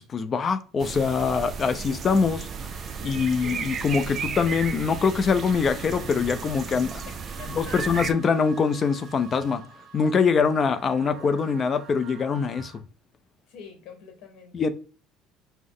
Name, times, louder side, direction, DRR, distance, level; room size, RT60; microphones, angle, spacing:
voice 1, 0.0-2.5 3.0-7.0 7.5-9.6 9.9-12.7 14.5-14.7, left 5 dB, 35° left, 0.4 m, -23 dB
sound 1, 0.8-8.1, right 6 dB, 35° right, 0.4 m, -34 dB
sound 2, 2.0-12.8, right 5 dB, 55° right, 0.8 m, -47 dB
voice 2, 3.0-3.7 7.4-8.0 13.5-14.5, left 6 dB, 75° left, 1.0 m, -46 dB
5.1 x 2.0 x 3.7 m
cardioid pair, 115°, 0 cm